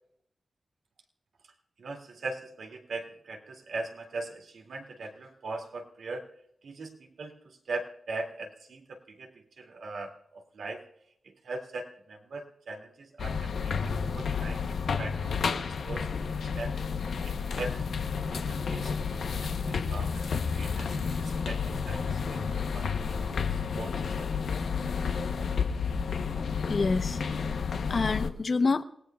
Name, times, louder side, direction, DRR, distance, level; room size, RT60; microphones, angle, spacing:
voice 1, 1.8-6.3 6.6-10.8 11.2-14.6 15.0-16.7 17.2-17.8 18.3-24.6, right 3 dB, 90° right, 1 dB, 2.3 m, -41 dB
sound 1, 13.2-28.3, left 5 dB, 85° left, 0.8 m, -31 dB
voice 2, 26.3-28.8, left 4 dB, 50° left, 10 dB, 0.8 m, -29 dB
28.0 x 18.0 x 2.3 m, 0.75 s
wide cardioid pair, 95°, 0 cm